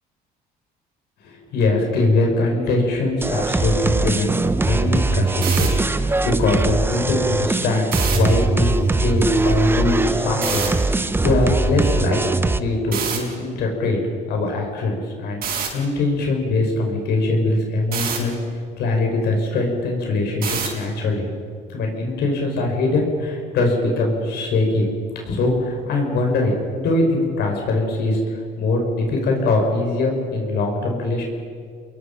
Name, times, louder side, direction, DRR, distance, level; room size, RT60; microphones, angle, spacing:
voice 1, 1.2-4.3 4.6-12.2 12.6-14.0 14.3-18.4 18.8-21.3 21.7-24.8 25.1-28.2 28.6-31.2, left 2 dB, 75° left, 1 dB, 6.2 m, -22 dB
sound 1, 3.2-12.6, right 3 dB, 15° right, 0.9 m, -21 dB
sound 2, 5.3-5.7 7.8-8.2 10.4-10.7 12.9-13.2 15.4-15.7 17.9-18.2 20.4-20.8, right 7 dB, 60° right, 6.2 m, -25 dB
29.5 x 22.0 x 5.7 m, 2.1 s
cardioid pair, 110°, 17 cm